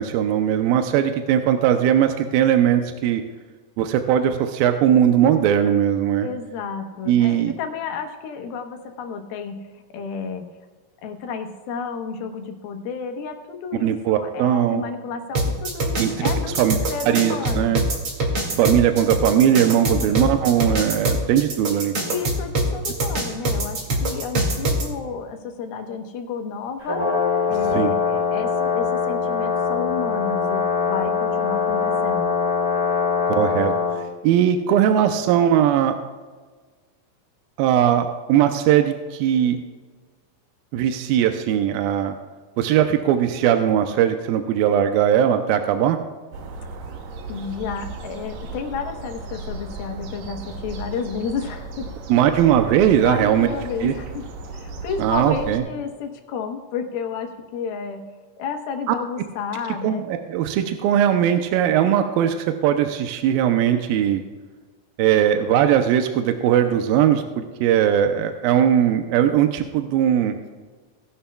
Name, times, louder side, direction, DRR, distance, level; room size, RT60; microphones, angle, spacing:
voice 1, 0.0-3.2 3.8-6.3 7.1-7.6 13.8-14.8 16.0-16.3 16.6-16.8 17.1-17.8 18.6-21.9 27.7-27.9 33.4-33.7 34.2-36.0 37.6-39.6 40.7-42.1 42.6-46.0 52.1-53.5 53.8-53.9 55.0-55.6 59.8-64.2 65.0-70.4, right 10 dB, 85° right, 6 dB, 2.5 m, -19 dB
voice 2, 6.2-10.5 11.0-16.6 16.9-17.8 19.7-20.2 22.1-27.1 27.5-32.4 47.3-51.9 52.9-54.2 54.5-58.0 58.4-60.0, left 5 dB, 85° left, 5 dB, 3.0 m, -31 dB
sound 1, 15.3-24.8, right 1 dB, 45° right, 2.7 m, -23 dB
Brass instrument, 26.8-34.0, left 6 dB, 10° left, 3.8 m, -22 dB
sound 2, 46.3-55.6, right 3 dB, 65° right, 1.9 m, -35 dB
18.5 x 11.5 x 2.3 m, 1.4 s
omnidirectional pair, 4.2 m